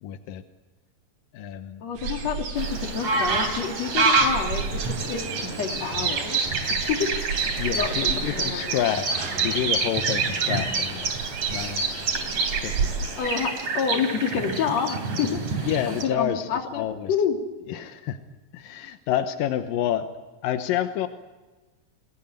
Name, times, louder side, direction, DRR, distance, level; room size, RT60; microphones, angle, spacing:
voice 1, 0.0-0.4 1.3-1.8 7.6-12.1 12.5-12.9 15.6-17.1 17.7-18.2 18.5-20.1 20.4-21.1, left 10 dB, 85° left, 8 dB, 2.8 m, -29 dB
voice 2, 1.8-2.7 2.9-6.4 6.7-7.1 7.7-7.9 8.3-8.8 13.2-17.4, left 7 dB, 55° left, 3 dB, 3.7 m, -28 dB
sound 1, 1.9-13.1, right 5 dB, 85° right, 4.5 m, -34 dB
sound 2, 2.6-16.0, right 4 dB, 55° right, 4.6 m, -27 dB
28.0 x 20.0 x 8.9 m, 1.2 s
omnidirectional pair, 3.8 m